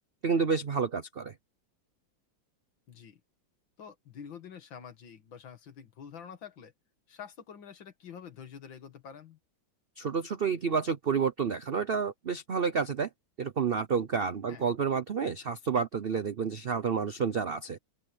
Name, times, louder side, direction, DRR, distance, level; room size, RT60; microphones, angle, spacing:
voice 1, 0.2-1.3 10.0-13.1 13.4-17.8, right 6 dB, 80° right, 0.5 m, -29 dB
voice 2, 2.9-3.2 3.8-6.7 7.1-9.4 14.5-14.6, left 7 dB, 75° left, 2.5 m, -47 dB
open air
omnidirectional pair, 2.1 m